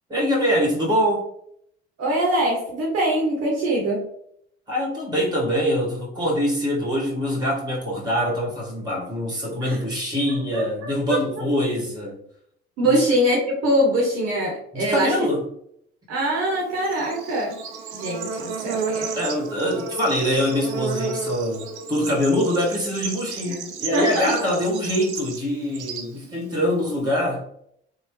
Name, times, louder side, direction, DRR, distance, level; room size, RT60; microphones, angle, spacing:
voice 1, 0.1-1.3 4.7-12.2 12.9-13.0 14.7-15.4 19.1-27.5, equal, 10° right, 1.5 m, -24 dB
voice 2, 2.0-4.0 9.6-9.8 10.5-10.6 11.1-11.2 12.8-15.2 16.1-17.6 17.9-19.1 23.5-23.6 23.9-24.6, right 1 dB, 45° right, 1.0 m, -23 dB
Bird / Insect, 16.5-27.1, right 5 dB, 80° right, 0.5 m, -33 dB
3.1 x 2.0 x 3.1 m
figure-of-eight pair, 55°, 34 cm